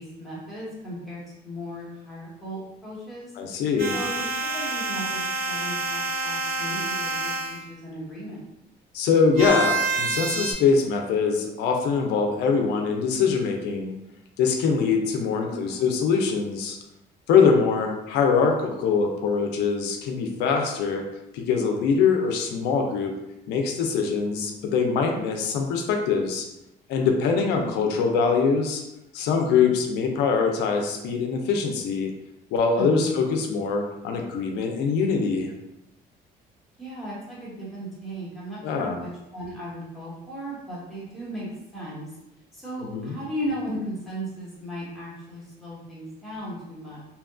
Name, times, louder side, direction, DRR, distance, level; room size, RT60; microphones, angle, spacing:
voice 1, 0.0-3.3 3.9-8.5 15.5-15.8 18.6-18.7 27.3-27.8 29.2-29.7 32.8-33.1 36.8-42.2 42.5-47.0, equal, ahead, -8 dB, 1.1 m, -36 dB
voice 2, 3.4-4.0 8.9-13.9 14.4-16.8 17.3-21.0 21.3-23.1 23.5-26.5 26.9-28.8 29.1-32.1 32.5-35.5 38.6-39.0 42.8-43.2, left 5 dB, 85° left, 2 dB, 0.4 m, -23 dB
sound 1, 3.8-7.6 9.4-10.5, right 3 dB, 70° right, 0.8 m, -27 dB
2.8 x 2.2 x 2.4 m, 0.89 s
cardioid pair, 110°, 17 cm